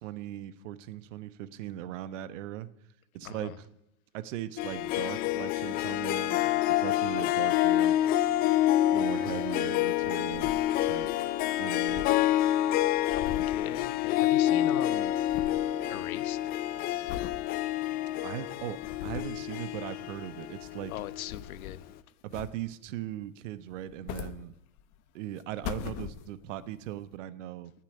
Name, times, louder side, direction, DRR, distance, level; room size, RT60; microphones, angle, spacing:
voice 1, 0.0-2.7 3.1-3.6 4.1-8.0 8.9-10.5 10.8-11.1 11.6-12.1 18.2-20.9 22.2-24.5 25.1-27.7, right 12 dB, 60° right, 1.2 m, -39 dB
voice 2, 3.2-3.6 9.1-9.5 13.1-15.1 15.9-16.5 20.9-21.8, left 12 dB, 80° left, 1.2 m, -40 dB
Harp, 4.6-21.4, left 13 dB, 25° left, 0.4 m, -28 dB
sound 1, 10.0-11.2 11.4-11.5 11.7-14.5 14.7-15.7 16.2-16.5 17.1-17.4 18.0-18.1 18.6-19.5 20.5-21.9 22.3-22.9 23.7-25.0 25.4-26.6 27.1-27.2, left 10 dB, 40° left, 1.2 m, -42 dB
19.0 x 7.4 x 9.7 m
supercardioid pair, 135°, 42 cm